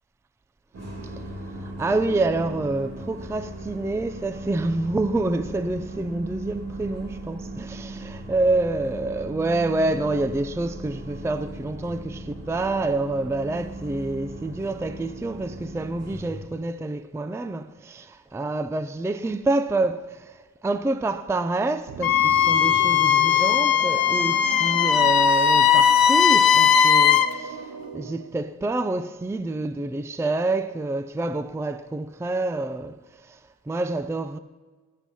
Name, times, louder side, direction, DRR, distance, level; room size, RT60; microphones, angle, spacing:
sound 1, 0.7-16.5, right 1 dB, 45° right, 2.9 m, -38 dB
voice 1, 1.0-34.4, right 2 dB, 10° right, 0.4 m, -27 dB
sound 2, 21.9-28.4, right 6 dB, 70° right, 1.0 m, -37 dB
Wind instrument woodwind instrument, 22.0-27.3, left 8 dB, 90° left, 0.9 m, -18 dB
19.0 x 10.0 x 5.5 m
wide cardioid pair, 155°, 35 cm